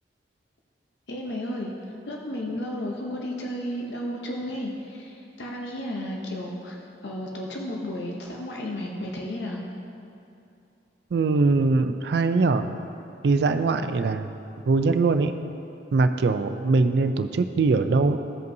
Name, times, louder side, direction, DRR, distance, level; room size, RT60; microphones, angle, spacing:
voice 1, 1.1-1.7 2.1-6.8 7.0-9.6, left 1 dB, 75° left, -1 dB, 0.8 m, -33 dB
voice 2, 11.1-12.7 13.2-14.3 14.7-15.3 15.9-18.2, right 3 dB, 65° right, 9 dB, 0.4 m, -22 dB
15.0 x 5.3 x 2.7 m, 2.7 s
head